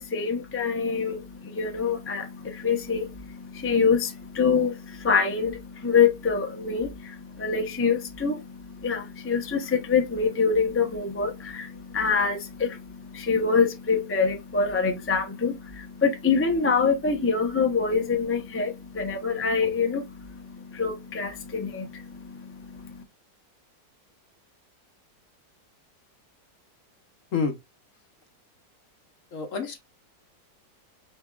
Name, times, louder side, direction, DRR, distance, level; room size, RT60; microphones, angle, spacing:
voice 1, 0.0-23.0, left 5 dB, 15° left, 0.4 m, -26 dB
voice 2, 29.3-29.8, left 5 dB, 55° left, 1.1 m, -28 dB
6.3 x 2.9 x 2.3 m
omnidirectional pair, 1.9 m